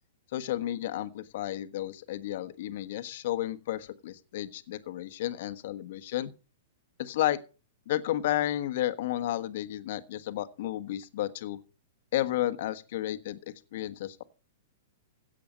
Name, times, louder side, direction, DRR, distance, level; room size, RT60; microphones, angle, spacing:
voice 1, 0.3-6.3 7.0-7.4 7.9-11.6 12.1-14.2, left 13 dB, 60° left, 1.4 m, -32 dB
16.5 x 7.6 x 5.2 m
hypercardioid pair, 145°, 0 cm